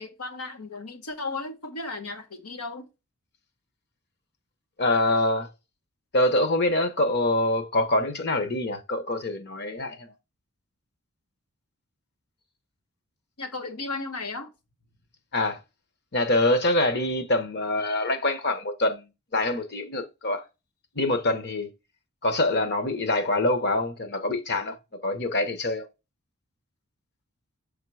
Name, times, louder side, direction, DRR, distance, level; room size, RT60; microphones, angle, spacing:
voice 1, 0.0-2.9 13.4-14.5, left 3 dB, 90° left, 1.3 m, -35 dB
voice 2, 4.8-5.5 6.1-10.1 15.3-15.6 16.1-20.4 20.9-21.7 22.2-24.8 25.0-25.9, left 2 dB, 50° left, 1.0 m, -25 dB
6.4 x 3.7 x 4.8 m
head